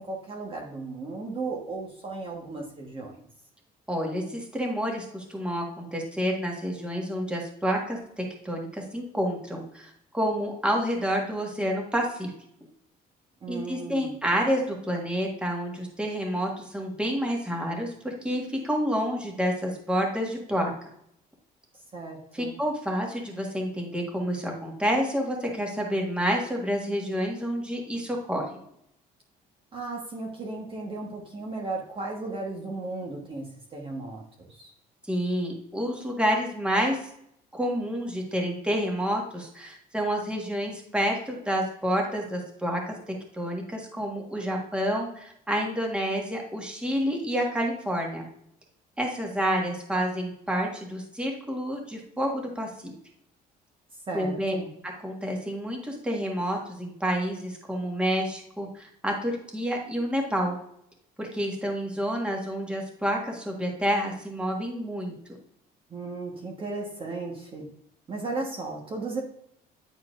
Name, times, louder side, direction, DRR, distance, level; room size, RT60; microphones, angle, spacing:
voice 1, 0.0-3.2 13.4-14.2 21.9-22.5 29.7-34.7 54.1-54.7 65.9-67.7 68.1-69.2, right 3 dB, 30° right, -1 dB, 1.2 m, -35 dB
voice 2, 3.9-12.3 13.5-20.7 22.3-28.5 35.1-37.0 37.5-48.2 49.0-52.9 54.1-54.6 54.8-60.5 61.2-65.1, equal, 5° right, 0 dB, 1.5 m, -29 dB
9.3 x 4.4 x 2.5 m, 0.72 s
cardioid pair, 110°, 17 cm